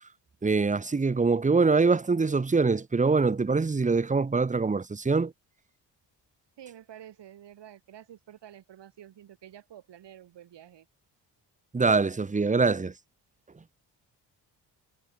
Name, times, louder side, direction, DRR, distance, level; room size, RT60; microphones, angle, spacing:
voice 1, 0.4-5.3 11.7-12.9, right 4 dB, 15° right, 1.0 m, -24 dB
voice 2, 6.6-10.9, right 11 dB, 70° right, 3.7 m, -49 dB
cardioid pair, 80°, 44 cm